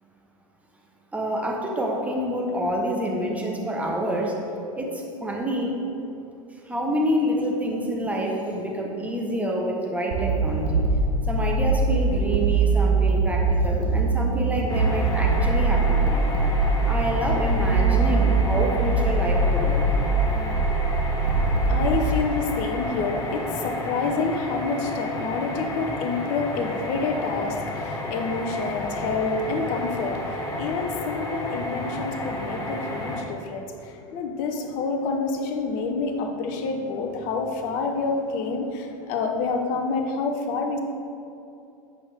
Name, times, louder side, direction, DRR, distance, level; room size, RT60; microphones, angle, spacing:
voice 1, 1.1-4.4 4.7-5.8 6.7-10.8 11.3-16.3 16.8-19.8, equal, 10° right, -1 dB, 1.0 m, -27 dB
sound 1, 10.1-22.0, right 3 dB, 70° right, 0.9 m, -22 dB
sound 2, 14.7-33.2, left 2 dB, 20° left, 1.3 m, -32 dB
voice 2, 21.2-40.8, left 4 dB, 45° left, 4 dB, 0.9 m, -28 dB
8.5 x 5.3 x 3.5 m, 2.8 s
figure-of-eight pair, 85°, 18 cm